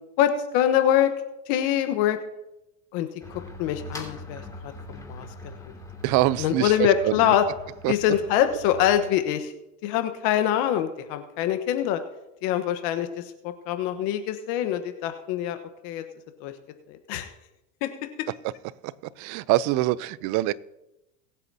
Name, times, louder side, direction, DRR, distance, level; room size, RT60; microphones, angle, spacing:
voice 1, 0.2-1.1 1.5-2.2 2.9-4.4 4.9-5.7 6.4-7.4 7.9-9.5 9.8-12.0 12.4-16.0 16.4-16.5 16.9-17.3 17.8-17.9, left 10 dB, 65° left, 1.2 m, -24 dB
sound 1, 3.2-9.2, left 2 dB, 10° left, 2.7 m, -42 dB
voice 2, 6.0-7.3 7.8-7.9 18.8-18.9 19.2-20.5, right 16 dB, 50° right, 0.6 m, -24 dB
22.5 x 8.2 x 2.8 m
supercardioid pair, 105°, 38 cm